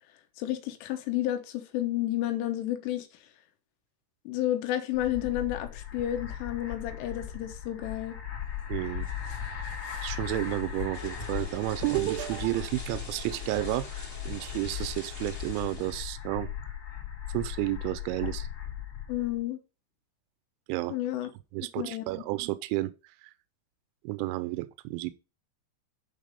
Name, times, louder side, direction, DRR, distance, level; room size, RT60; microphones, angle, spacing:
voice 1, 0.4-3.1 4.3-8.2 19.1-19.6 20.9-21.3 21.8-22.1, left 13 dB, 80° left, 3.5 m, -31 dB
sound 1, 4.9-19.4, left 9 dB, 45° left, 3.8 m, -38 dB
voice 2, 8.7-9.1 10.0-16.8 17.3-18.5 20.7-21.0 21.5-22.9 23.2-23.3 24.0-25.1, right 18 dB, 85° right, 2.9 m, -31 dB
sound 2, 10.9-16.1, left 2 dB, 20° left, 2.1 m, -44 dB
11.0 x 4.1 x 5.2 m
omnidirectional pair, 5.6 m